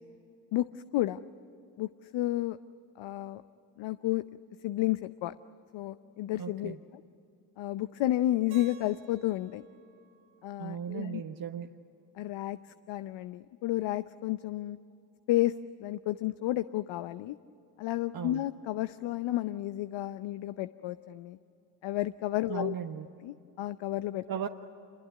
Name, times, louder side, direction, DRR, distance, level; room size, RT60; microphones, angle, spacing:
voice 1, 0.5-1.2 1.8-2.6 3.0-3.4 3.8-4.2 4.6-5.3 5.7-6.8 7.6-9.6 10.4-11.2 12.1-14.8 15.3-17.4 17.8-21.4 21.8-22.7 23.2-24.2, left 15 dB, 65° left, 13 dB, 0.8 m, -31 dB
voice 2, 6.4-6.8 10.6-11.7 18.1-18.4 22.4-23.1 24.3-24.5, right 8 dB, 45° right, 5 dB, 1.2 m, -36 dB
Keyboard (musical), 8.5-11.5, right 9 dB, 80° right, 3.4 m, -57 dB
27.5 x 21.5 x 9.5 m, 2.7 s
hypercardioid pair, 50°, 48 cm